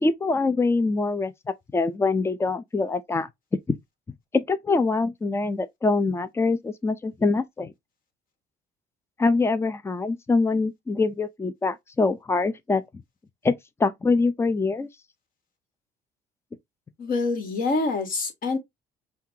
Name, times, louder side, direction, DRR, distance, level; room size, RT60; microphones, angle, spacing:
voice 1, 0.0-1.3 1.7-3.3 3.7-3.8 4.3-7.7 9.2-12.8 13.4-13.5 13.8-14.9, left 3 dB, 15° left, 0.6 m, -24 dB
voice 2, 17.0-18.6, left 3 dB, 55° left, 2.0 m, -26 dB
5.6 x 2.5 x 2.8 m
cardioid pair, 110°, 17 cm